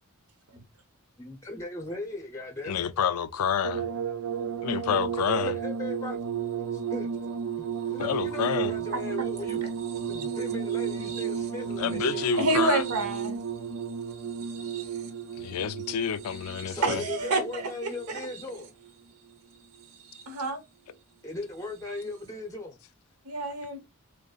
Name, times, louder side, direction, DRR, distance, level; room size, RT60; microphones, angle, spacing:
voice 1, 1.2-2.9 5.4-6.2 6.6-7.1 7.6-9.6 10.1-12.3 13.7-14.0 16.4-18.7 21.2-22.8, left 2 dB, 15° left, 0.6 m, -38 dB
voice 2, 2.7-3.9 4.6-5.5 8.0-8.7 11.8-12.8 15.4-17.0, left 8 dB, 80° left, 0.4 m, -28 dB
sound 1, 3.6-18.9 19.7-20.5 21.9-22.0, right 7 dB, 60° right, 0.6 m, -33 dB
voice 3, 12.3-13.4 16.8-17.6 18.1-18.2 20.3-20.6 23.2-23.8, right 2 dB, 80° right, 1.1 m, -27 dB
5.0 x 2.1 x 2.3 m
head